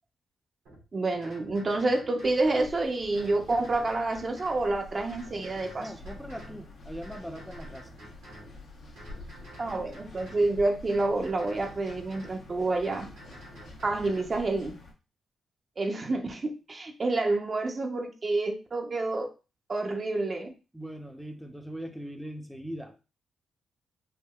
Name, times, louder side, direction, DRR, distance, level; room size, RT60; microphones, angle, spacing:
sound 1, 0.7-0.8 1.2-2.7 3.1-4.7 5.1-6.6 7.0-8.5 9.0-10.5 10.9-12.4 12.8-14.4, equal, 85° right, 1.2 m, -49 dB
voice 1, 0.9-5.9 9.6-13.1 13.8-14.8 15.8-19.3 19.7-20.5, right 2 dB, 45° right, 3 dB, 0.6 m, -28 dB
sound 2, 2.2-14.9, left 2 dB, 60° left, 0.7 m, -48 dB
voice 2, 5.8-7.9 20.7-23.0, equal, ahead, 3 dB, 0.6 m, -40 dB
3.5 x 2.1 x 2.3 m, 0.31 s
hypercardioid pair, 45°, 0 cm